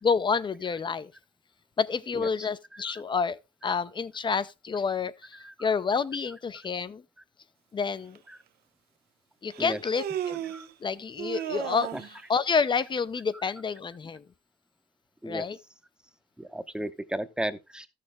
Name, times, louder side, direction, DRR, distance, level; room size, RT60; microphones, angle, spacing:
voice 1, 0.0-1.1 1.8-7.0 7.7-8.2 9.4-10.4 10.8-14.2 15.2-15.6, left 5 dB, 30° left, 0.6 m, -29 dB
Human voice, 8.1-8.2 9.5-10.7 11.2-12.2, right 10 dB, 70° right, 0.8 m, -34 dB
voice 2, 16.4-17.9, right 1 dB, 5° right, 0.9 m, -34 dB
13.5 x 6.6 x 3.5 m
cardioid pair, 110°, 17 cm